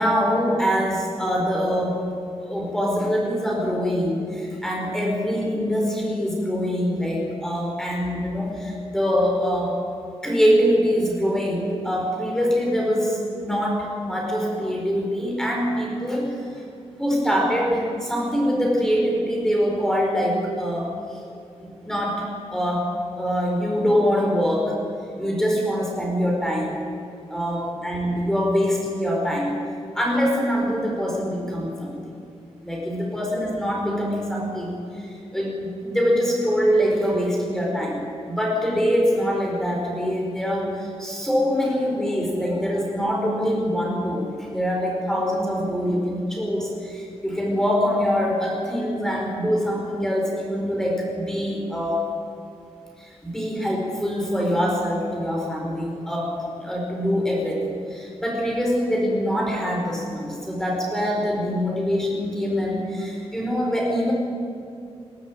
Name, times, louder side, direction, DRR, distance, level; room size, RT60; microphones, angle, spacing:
voice 1, 0.0-2.1 2.4-9.8 10.2-16.6 17.0-21.2 21.6-24.8 25.2-26.8 27.3-29.5 29.9-32.0 32.6-38.0 38.3-52.0 53.0-64.1, equal, 5° left, -2 dB, 4.9 m, -24 dB
20.0 x 18.0 x 8.9 m, 2.5 s
wide cardioid pair, 130°, 11 cm